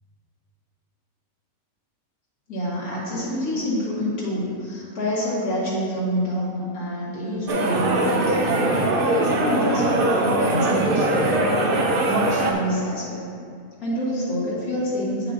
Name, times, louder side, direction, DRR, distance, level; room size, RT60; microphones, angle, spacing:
voice 1, 2.5-11.4 12.0-13.3 13.8-15.3, equal, 75° left, -8 dB, 2.1 m, -27 dB
sound 1, 7.5-12.5, right 2 dB, 55° right, 0.6 m, -21 dB
7.8 x 7.2 x 2.7 m, 2.3 s
omnidirectional pair, 1.6 m